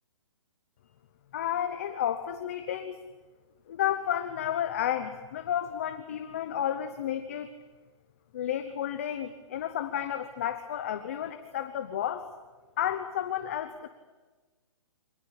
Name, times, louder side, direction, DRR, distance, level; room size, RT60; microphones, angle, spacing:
voice 1, 1.3-3.0 3.7-7.5 8.3-12.3 12.8-13.9, left 10 dB, 25° left, 8 dB, 0.9 m, -31 dB
25.5 x 19.0 x 8.8 m, 1.3 s
hypercardioid pair, 175°, 17 cm